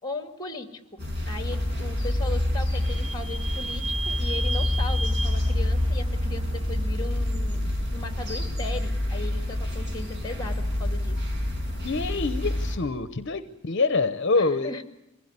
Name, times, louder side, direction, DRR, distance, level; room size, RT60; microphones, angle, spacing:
voice 1, 0.0-11.2 14.4-14.8, left 2 dB, 20° left, 6 dB, 2.1 m, -37 dB
sound 1, 1.0-12.8, left 1 dB, 55° right, 5.8 m, -27 dB
Vehicle / Squeak, 1.4-7.0, right 3 dB, 25° right, 1.0 m, -36 dB
voice 2, 11.8-14.7, left 3 dB, 60° left, 11 dB, 0.8 m, -25 dB
23.5 x 16.5 x 9.7 m, 0.92 s
head